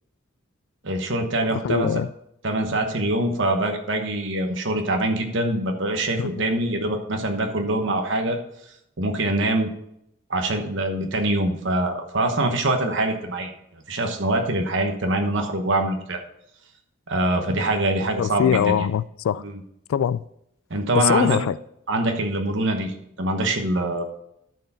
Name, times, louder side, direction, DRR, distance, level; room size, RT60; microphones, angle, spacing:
voice 1, 0.8-1.9 2.4-8.4 9.0-9.7 10.3-13.5 13.9-16.2 17.1-18.7 19.4-19.5 20.7-21.4 21.9-24.0, right 1 dB, 65° right, 1.1 m, -24 dB
voice 2, 1.5-2.1 6.2-6.6 18.2-19.4 19.9-20.2 20.9-21.6, left 8 dB, 90° left, 0.3 m, -23 dB
12.0 x 4.6 x 5.7 m
head